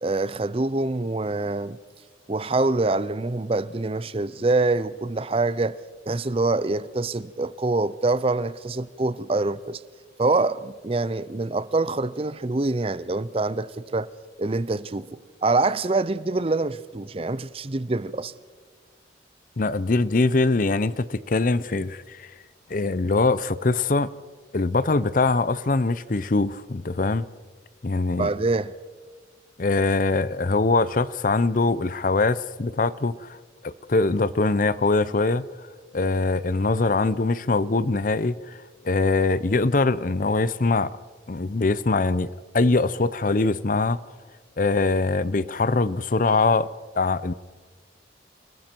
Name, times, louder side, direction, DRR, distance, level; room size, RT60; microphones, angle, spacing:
voice 1, 0.0-1.8 2.3-5.7 6.1-9.8 10.2-14.1 14.4-18.3 28.2-28.7, right 3 dB, 30° right, 0.5 m, -25 dB
voice 2, 19.6-22.3 22.7-24.1 24.5-27.3 27.8-28.3 29.6-33.4 33.6-35.4 35.9-38.6 38.8-40.9 41.3-42.3 42.5-44.0 44.6-46.7 47.0-47.3, left 3 dB, 45° left, 0.6 m, -22 dB
29.0 x 20.0 x 4.5 m
head